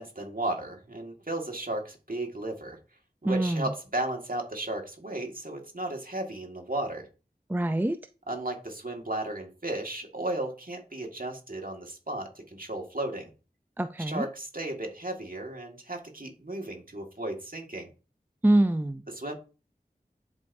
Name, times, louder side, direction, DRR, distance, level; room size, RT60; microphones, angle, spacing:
voice 1, 0.0-2.8 3.2-7.1 8.3-13.3 14.0-17.9 19.2-19.3, right 1 dB, 55° right, 1.8 m, -34 dB
voice 2, 3.2-3.7 7.5-8.0 13.8-14.3 18.4-19.0, right 1 dB, 10° right, 0.4 m, -25 dB
10.5 x 4.6 x 2.6 m
wide cardioid pair, 40°, 17 cm